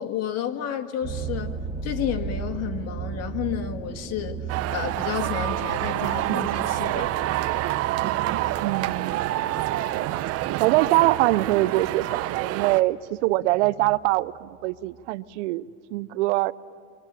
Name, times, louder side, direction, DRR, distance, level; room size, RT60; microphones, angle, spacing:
voice 1, 0.0-4.4 4.7-7.1, left 10 dB, 45° left, 6 dB, 1.9 m, -31 dB
sound 1, 1.0-13.3 13.9-14.3 14.8-14.9 15.3-15.4, right 7 dB, 20° right, 1.5 m, -36 dB
sound 2, 4.5-12.8, right 14 dB, 45° right, 0.8 m, -27 dB
voice 2, 8.6-9.2 9.9-10.3 10.5-16.5, right 18 dB, 75° right, 18 dB, 0.7 m, -24 dB
29.5 x 24.5 x 7.4 m, 2.1 s
supercardioid pair, 120°, 35 cm